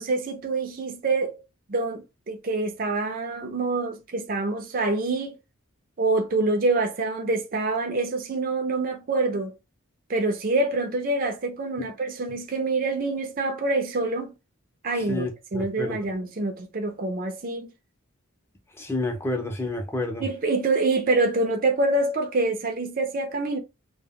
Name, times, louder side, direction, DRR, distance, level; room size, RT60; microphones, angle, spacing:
voice 1, 0.0-1.4 1.7-5.4 6.0-9.6 10.1-14.3 14.8-15.3 15.5-17.7 20.2-23.6, right 2 dB, 40° right, 0.5 m, -26 dB
voice 2, 15.1-16.0 18.8-20.2, left 2 dB, 10° left, 0.5 m, -29 dB
2.1 x 2.1 x 3.5 m
head